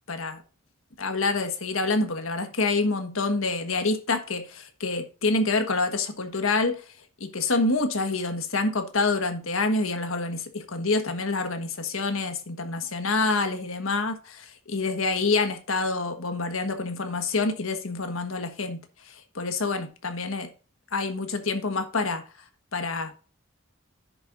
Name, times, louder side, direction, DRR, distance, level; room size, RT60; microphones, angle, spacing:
voice 1, 0.1-0.4 1.0-6.8 7.2-20.5 20.9-22.2 22.7-23.2, left 3 dB, 80° left, 1.4 m, -27 dB
10.5 x 6.8 x 2.6 m
head